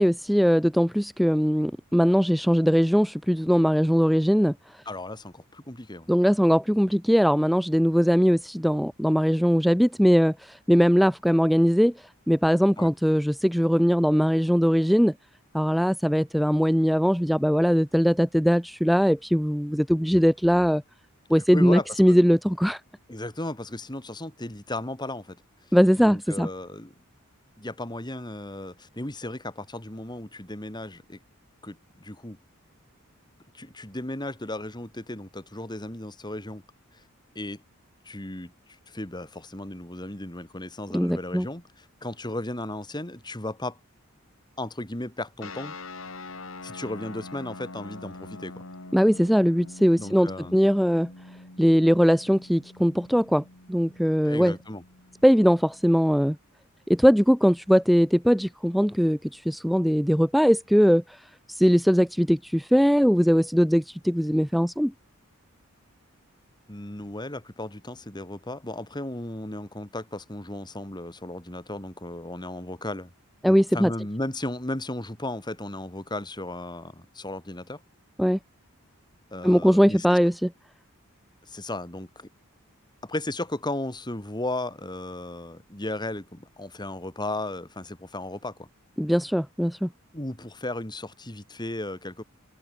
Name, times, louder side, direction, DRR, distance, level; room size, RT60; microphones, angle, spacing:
voice 1, 0.0-4.5 6.1-11.9 12.3-15.1 15.5-20.8 21.3-22.8 25.7-26.5 40.9-41.5 48.9-51.1 51.6-53.4 53.7-54.5 55.2-56.4 56.9-61.2 61.5-64.9 73.4-73.9 78.2-78.4 79.4-80.5 89.0-89.9, equal, ahead, 1.0 m, -21 dB
voice 2, 4.9-6.1 12.8-12.9 21.5-22.2 23.1-25.4 26.0-26.9 27.6-31.2 31.6-32.4 33.5-36.6 36.9-37.0 37.3-37.6 38.0-38.5 38.9-43.8 44.6-45.7 46.6-48.6 50.0-50.5 54.2-54.8 66.7-73.1 73.4-77.8 79.3-80.2 81.4-82.3 83.0-88.7 90.1-92.2, left 1 dB, 20° left, 2.9 m, -35 dB
sound 1, 45.4-56.3, left 2 dB, 65° left, 3.1 m, -44 dB
head